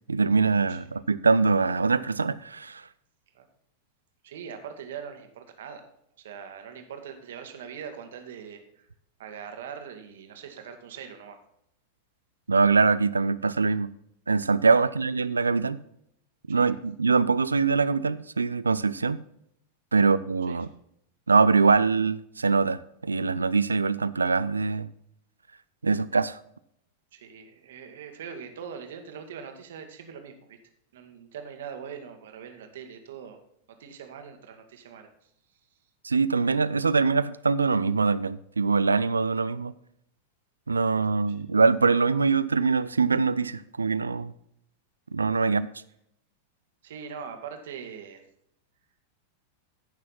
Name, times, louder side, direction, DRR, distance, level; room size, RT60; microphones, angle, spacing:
voice 1, 0.1-2.8 12.5-13.9 14.3-15.8 16.5-19.2 19.9-20.7 21.3-24.9 25.8-26.4 36.0-39.7 40.7-44.3 45.1-45.7, right 4 dB, 75° right, 0.5 m, -23 dB
voice 2, 4.2-5.9 6.2-8.9 9.2-11.4 16.5-16.8 20.0-20.1 20.5-20.6 27.1-30.6 30.9-33.4 33.7-35.1 41.3-41.4 45.4-45.6 46.8-48.2, right 7 dB, 60° right, 1.9 m, -42 dB
15.0 x 6.3 x 4.2 m
figure-of-eight pair, 90°, 0 cm